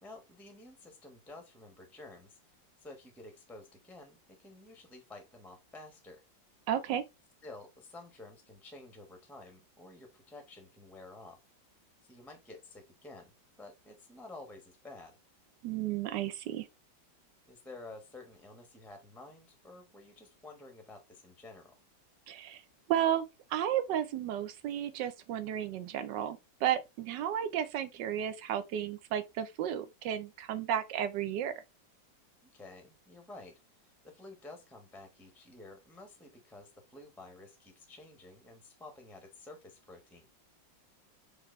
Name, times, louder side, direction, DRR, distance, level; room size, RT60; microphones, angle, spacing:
voice 1, 0.0-2.4 2.8-6.2 7.4-11.4 12.0-13.3 13.6-15.2 17.5-21.7 32.5-40.3, left 2 dB, ahead, 0.6 m, -51 dB
voice 2, 6.7-7.0 15.6-16.7 22.3-22.6 22.9-31.5, right 10 dB, 70° right, 1.2 m, -33 dB
5.0 x 3.2 x 3.1 m
omnidirectional pair, 2.1 m